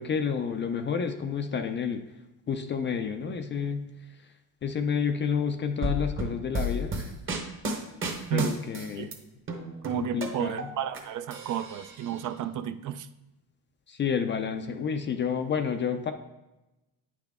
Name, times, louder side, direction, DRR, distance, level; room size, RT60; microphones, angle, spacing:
voice 1, 0.0-2.0 2.5-3.9 4.6-7.1 8.3-9.1 9.9-10.7 13.9-16.1, left 6 dB, 30° left, 7 dB, 0.4 m, -30 dB
sound 1, 5.8-9.1 9.5-11.0 11.3-12.2, equal, 30° right, 1.0 m, -32 dB
voice 2, 9.8-13.1, right 9 dB, 55° right, 10 dB, 0.5 m, -32 dB
9.3 x 5.9 x 3.5 m, 1.0 s
cardioid pair, 175°, 39 cm